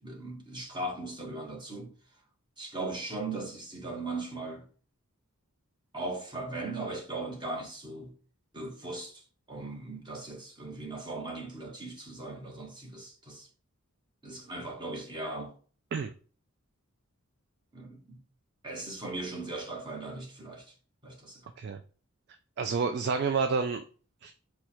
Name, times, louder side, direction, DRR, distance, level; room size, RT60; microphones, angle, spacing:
voice 1, 0.0-1.9 2.6-4.7 5.9-8.1 8.5-9.2 9.5-13.5 14.2-15.5 17.7-18.2 18.6-20.7 21.0-21.5, right 2 dB, 20° right, 1.2 m, -38 dB
voice 2, 22.6-23.8 24.2-24.3, right 5 dB, 50° right, 0.3 m, -29 dB
4.6 x 2.3 x 4.2 m
head